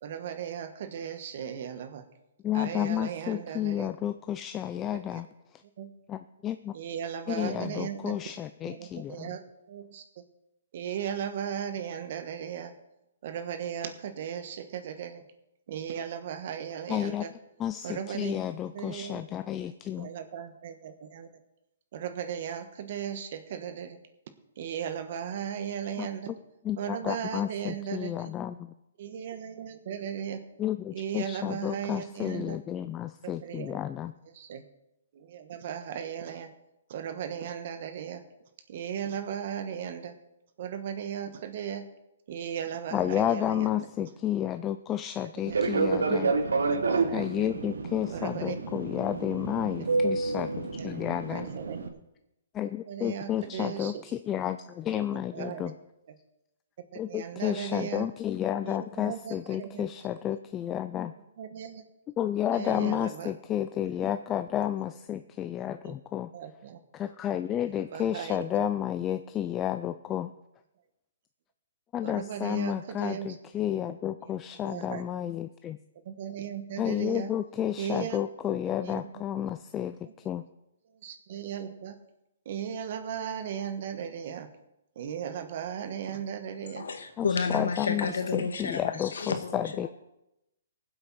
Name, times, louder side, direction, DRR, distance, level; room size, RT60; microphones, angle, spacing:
voice 1, 0.0-2.0 2.5-3.9 4.9-5.2 5.8-5.9 6.7-8.2 8.7-9.4 9.7-10.0 10.7-12.7 13.2-15.2 15.7-17.3 17.8-18.3 18.7-19.2 19.9-21.3 21.9-24.0 24.6-26.3 26.8-28.3 29.0-30.4 30.9-32.6 33.2-33.8 34.3-34.6 35.1-36.5 36.9-38.2 38.7-40.1 40.6-41.9 42.3-43.9 45.5-45.6 46.5-47.3 48.1-48.6 50.8-50.9 51.3-52.0 52.9-54.0 54.9-55.7 56.9-58.1 58.6-59.9 61.4-61.8 62.5-63.3 65.8-65.9 66.3-66.8 67.9-68.7 72.0-73.3 74.6-75.0 76.0-77.3 77.8-78.2 78.8-79.1 81.0-81.9 82.4-84.5 84.9-86.9, right 8 dB, 50° right, 9 dB, 1.3 m, -36 dB
voice 2, 2.4-5.3 6.1-6.7 7.3-9.4 16.9-17.2 17.6-20.1 26.0-26.1 26.6-28.7 30.6-34.1 42.9-46.3 47.1-51.5 52.5-55.7 57.0-61.1 62.2-66.3 66.9-70.3 71.9-75.8 76.8-80.0 80.2-80.4 87.2-88.1 88.3-89.9, left 11 dB, 20° left, 10 dB, 0.4 m, -31 dB
Fixed-wing aircraft airplane, 45.5-51.9, right 4 dB, 90° right, 1.3 m, -29 dB
voice 3, 86.6-89.6, left 5 dB, 80° left, 6 dB, 1.8 m, -31 dB
18.5 x 7.8 x 4.3 m, 0.89 s
hypercardioid pair, 150°, 0 cm